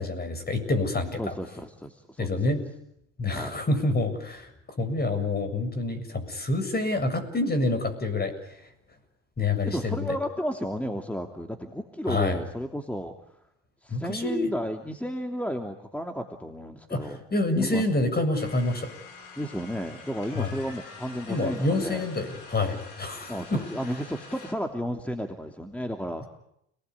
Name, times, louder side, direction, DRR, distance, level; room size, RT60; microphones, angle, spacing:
voice 1, 0.0-1.3 2.2-2.6 3.2-4.5 4.8-8.3 9.4-10.2 12.1-12.4 13.9-14.5 16.9-18.9 20.4-20.5 21.3-23.6, left 2 dB, 25° left, 10 dB, 7.4 m, -27 dB
voice 2, 1.2-2.4 3.3-3.5 9.7-13.4 13.8-17.2 17.5-17.9 19.4-22.1 23.3-26.2, equal, 5° left, 4 dB, 2.9 m, -33 dB
sound 1, 18.4-24.5, left 4 dB, 75° left, 7.2 m, -46 dB
30.0 x 20.0 x 9.8 m, 0.77 s
hypercardioid pair, 75°, 37 cm